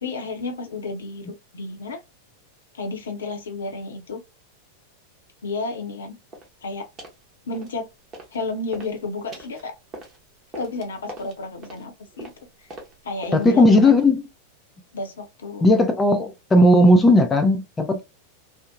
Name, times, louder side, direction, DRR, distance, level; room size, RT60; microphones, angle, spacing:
voice 1, 0.0-2.0 2.7-4.2 5.4-6.2 6.6-6.9 7.4-7.9 8.3-9.7 10.5-12.3 12.6-12.7 13.0-14.0 14.9-15.7, left 3 dB, 65° left, 0.7 m, -31 dB
sound 1, 6.3-6.6 7.0-7.2 7.5-8.4 8.7-14.2, right 1 dB, 25° right, 0.9 m, -43 dB
voice 2, 13.3-14.2 15.6-18.0, left 1 dB, 15° left, 0.5 m, -16 dB
2.7 x 2.1 x 2.6 m
figure-of-eight pair, 90°, 0 cm